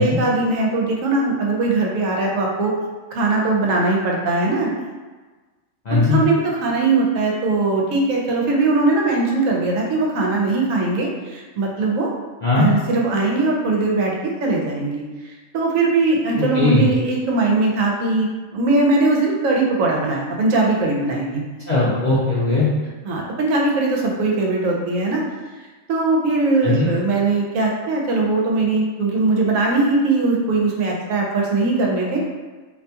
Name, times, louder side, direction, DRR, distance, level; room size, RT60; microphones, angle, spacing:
voice 1, 0.0-2.7 3.1-4.7 5.9-12.1 12.5-15.0 15.5-21.4 23.0-25.2 25.9-32.2, right 3 dB, 75° right, -2 dB, 0.9 m, -20 dB
voice 2, 5.9-6.2 12.4-12.7 16.4-16.8 21.7-22.7 26.6-26.9, left 3 dB, 70° left, -10 dB, 0.4 m, -18 dB
2.6 x 2.2 x 2.7 m, 1.3 s
omnidirectional pair, 1.4 m